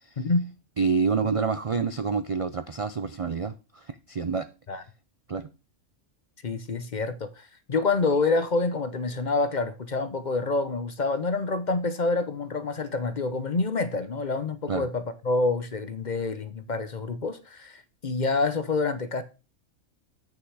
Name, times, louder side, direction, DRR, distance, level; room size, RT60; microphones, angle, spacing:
voice 1, 0.2-0.5 4.7-4.8 6.4-19.2, left 3 dB, 40° left, 0.8 m, -27 dB
voice 2, 0.8-4.5 5.3-5.5 14.7-14.9, right 5 dB, 55° right, 0.3 m, -27 dB
8.4 x 6.7 x 4.7 m
omnidirectional pair, 1.3 m